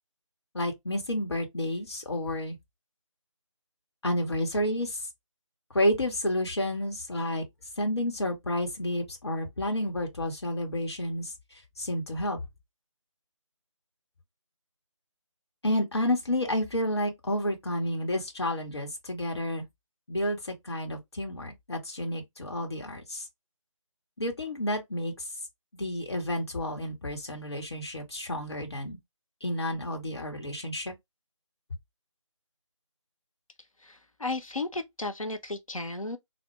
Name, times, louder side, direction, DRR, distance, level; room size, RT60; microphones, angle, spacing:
voice 1, 0.5-2.6 4.0-5.0 5.7-7.4 7.8-11.3 11.8-12.4 15.6-19.6 20.1-23.3 24.2-25.3 25.8-29.0 29.4-30.9, left 1 dB, 50° left, 1.0 m, -30 dB
voice 2, 33.8-36.2, left 2 dB, 85° left, 0.8 m, -34 dB
3.5 x 2.1 x 3.0 m
figure-of-eight pair, 160°, 17 cm